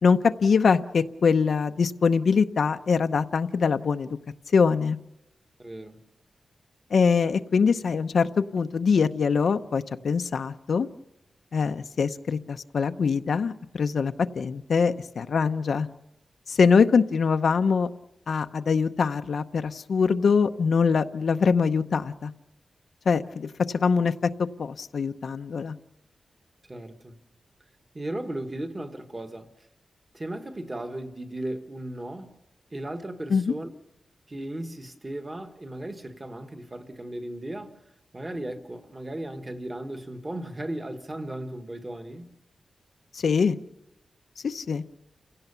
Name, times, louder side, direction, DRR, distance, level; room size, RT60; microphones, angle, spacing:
voice 1, 0.0-4.1 4.5-5.0 6.9-10.9 11.5-15.9 16.5-17.9 18.3-22.3 23.1-25.8 33.3-33.5 43.1-43.6 44.4-44.8, left 5 dB, 65° left, 0.7 m, -23 dB
voice 2, 5.6-6.0 26.7-27.2 27.9-29.5 30.1-32.3 32.7-33.7 34.3-37.8 38.1-42.4, right 1 dB, 20° right, 1.5 m, -36 dB
29.5 x 17.0 x 6.9 m
wide cardioid pair, 175°, 0 cm